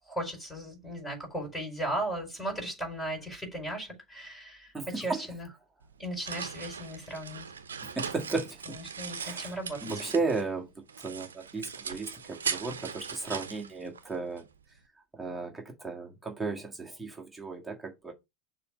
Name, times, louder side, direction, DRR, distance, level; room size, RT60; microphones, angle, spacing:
voice 1, 0.1-5.5 6.0-7.4 8.7-9.9, right 1 dB, 15° left, 4.6 m, -36 dB
voice 2, 4.7-5.2 7.9-8.8 9.2-9.6 9.8-10.7 11.0-14.4 15.2-18.1, right 3 dB, 10° right, 1.7 m, -34 dB
sound 1, 5.8-10.5 10.9-14.4, right 6 dB, 80° right, 0.8 m, -39 dB
6.8 x 3.1 x 5.0 m
figure-of-eight pair, 85°, 0 cm